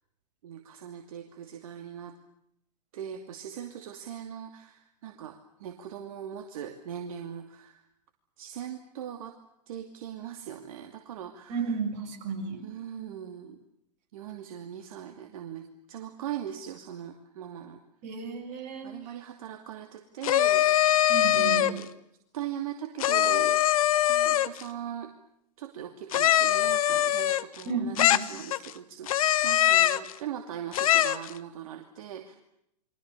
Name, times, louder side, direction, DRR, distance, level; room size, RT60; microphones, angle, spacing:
voice 1, 0.4-2.2 2.9-7.8 8.4-9.3 9.7-11.8 12.6-13.6 14.1-17.8 18.8-21.9 22.3-23.6 24.1-25.1 25.6-32.3, right 9 dB, 55° right, 5 dB, 2.6 m, -40 dB
voice 2, 11.5-12.7 18.0-18.9 21.1-21.7 27.6-28.2, right 5 dB, 35° right, 3 dB, 6.8 m, -33 dB
sound 1, 20.2-21.8 23.0-24.6 26.1-27.6 28.0-28.7 29.1-30.1 30.7-31.3, left 12 dB, 55° left, 1.3 m, -23 dB
29.5 x 23.5 x 6.8 m, 0.77 s
hypercardioid pair, 115°, 21 cm